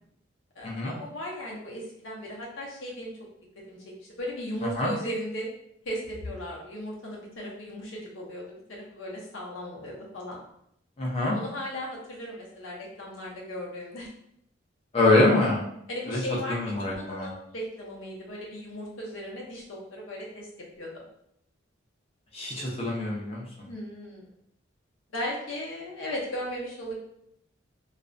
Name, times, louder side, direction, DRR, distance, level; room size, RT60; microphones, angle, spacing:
voice 1, 0.6-3.1 3.7-5.5 5.8-10.4 11.3-14.1 15.9-20.5 20.8-20.9 23.7-24.3 25.1-27.0, equal, 80° left, -3 dB, 0.7 m, -37 dB
voice 2, 11.0-11.4 14.9-15.6 16.1-16.2 16.5-17.3 22.3-23.7, left 2 dB, 30° left, -4 dB, 0.6 m, -25 dB
2.4 x 2.1 x 2.5 m, 0.74 s
head